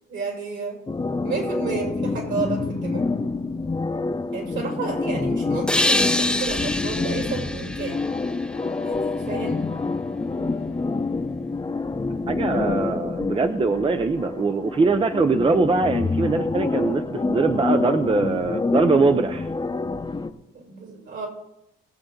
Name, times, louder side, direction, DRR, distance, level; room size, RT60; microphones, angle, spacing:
voice 1, 0.1-0.8 1.2-3.1 4.3-8.0 8.8-9.7 12.9-13.0 20.5-21.3, right 4 dB, 70° right, 0 dB, 5.4 m, -31 dB
sound 1, 0.9-20.3, left 3 dB, 20° left, 0.9 m, -27 dB
sound 2, 5.7-9.2, left 1 dB, 5° left, 0.5 m, -26 dB
voice 2, 12.3-19.5, right 4 dB, 25° right, 8 dB, 0.7 m, -22 dB
20.5 x 7.5 x 3.9 m, 0.87 s
cardioid pair, 90°, 20 cm